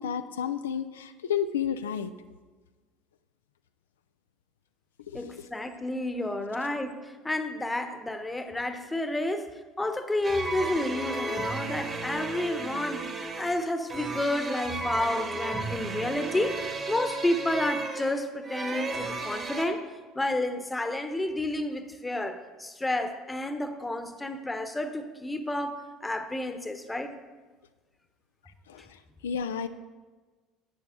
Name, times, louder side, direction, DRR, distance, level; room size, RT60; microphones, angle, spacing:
voice 1, 0.0-2.1 5.1-5.3 28.7-28.9 29.2-29.7, left 8 dB, 85° left, 9 dB, 0.3 m, -31 dB
voice 2, 5.1-13.1 13.4-16.6 16.9-19.8 20.1-27.1, left 1 dB, 15° left, 9 dB, 1.0 m, -30 dB
sound 1, 10.2-19.6, right 3 dB, 35° right, 1.7 m, -34 dB
11.0 x 8.1 x 3.7 m, 1.3 s
hypercardioid pair, 70°, 0 cm